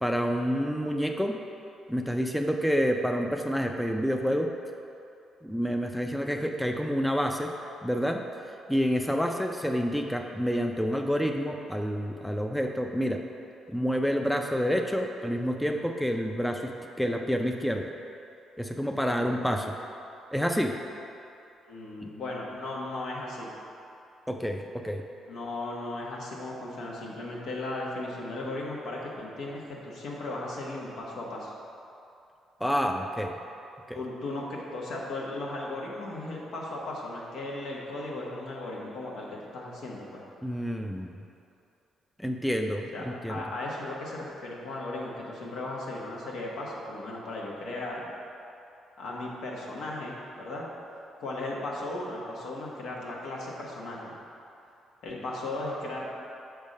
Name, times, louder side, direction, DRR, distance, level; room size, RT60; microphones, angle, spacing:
voice 1, 0.0-1.4 1.9-4.5 5.4-7.5 7.8-8.2 8.7-13.2 13.7-16.7 17.0-17.9 18.6-19.7 20.3-20.7 24.3-25.0 32.6-33.3 33.9-34.0 40.4-41.1 42.2-43.4, equal, ahead, 3 dB, 0.4 m, -28 dB
voice 2, 19.0-19.4 21.6-23.5 25.3-31.5 33.9-40.2 42.9-48.1 49.0-50.7 51.2-54.1 55.0-56.0, left 2 dB, 75° left, -3 dB, 1.2 m, -36 dB
6.3 x 3.5 x 5.3 m, 2.7 s
cardioid pair, 90°, 0 cm